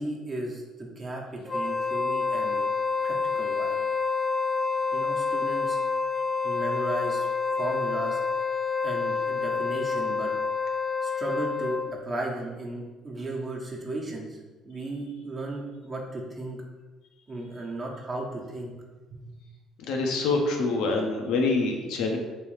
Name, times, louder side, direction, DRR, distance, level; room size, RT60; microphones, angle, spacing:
voice 1, 0.0-2.7 3.0-3.8 4.9-5.8 6.4-7.3 7.5-8.2 8.8-10.3 11.0-14.4 14.6-16.6 17.3-18.8 19.1-19.2, right 2 dB, 35° right, -1 dB, 0.9 m, -35 dB
Wind instrument woodwind instrument, 1.4-12.0, left 4 dB, 25° left, 0.4 m, -28 dB
voice 2, 19.9-22.2, left 3 dB, 75° left, 2 dB, 0.6 m, -25 dB
3.1 x 3.0 x 3.2 m, 1.2 s
supercardioid pair, 70°, 0 cm